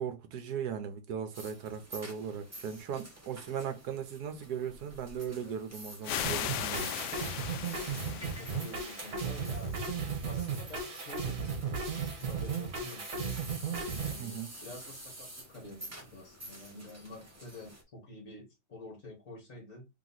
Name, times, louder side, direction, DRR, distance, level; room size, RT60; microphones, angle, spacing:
voice 1, 0.0-6.9 14.2-14.5, right 7 dB, 75° right, 1.3 m, -38 dB
sound 1, 1.3-17.8, right 1 dB, 15° right, 0.8 m, -49 dB
sound 2, 6.0-9.7, left 10 dB, 85° left, 1.2 m, -38 dB
sound 3, 6.2-14.2, right 5 dB, 55° right, 1.5 m, -36 dB
voice 2, 7.4-9.7 10.2-13.4 14.0-19.9, left 2 dB, 50° left, 1.7 m, -49 dB
3.5 x 3.0 x 3.9 m
omnidirectional pair, 1.8 m